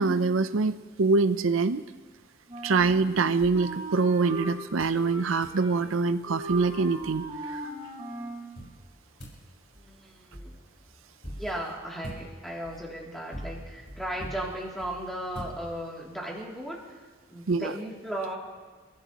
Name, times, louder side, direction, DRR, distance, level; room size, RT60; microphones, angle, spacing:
voice 1, 0.0-1.8 2.6-7.6 17.5-17.7, right 4 dB, 85° right, 11 dB, 0.6 m, -25 dB
Wind instrument woodwind instrument, 2.5-4.6 4.9-6.0 6.2-8.4, right 1 dB, 30° right, 4.8 m, -39 dB
sound 1, 2.8-4.3 4.8-5.1 5.4-5.7 6.2-6.3 6.5-7.6 8.6-16.1, equal, 50° left, 5.2 m, -45 dB
voice 2, 9.7-10.6 11.3-17.0 17.3-18.4, right 1 dB, ahead, -4 dB, 2.9 m, -36 dB
30.0 x 15.5 x 3.0 m, 1.3 s
head